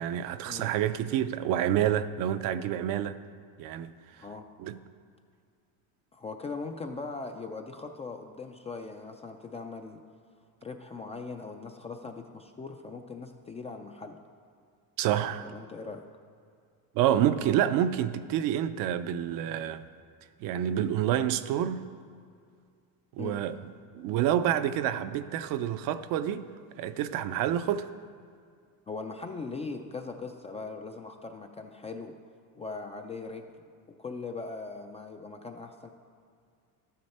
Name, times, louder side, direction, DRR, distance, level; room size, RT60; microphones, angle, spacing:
voice 1, 0.0-3.2 3.6-3.9 4.6-4.8 15.0-15.5 16.9-19.8 20.4-21.8 23.1-23.6 23.9-26.5 26.8-27.9, right 11 dB, 55° right, 0.5 m, -28 dB
voice 2, 6.1-10.0 10.6-14.2 15.4-16.0 23.2-23.4 28.9-32.1 32.5-33.5 34.0-35.9, left 4 dB, 15° left, 0.3 m, -40 dB
12.5 x 9.6 x 4.2 m
cardioid pair, 145°, 40 cm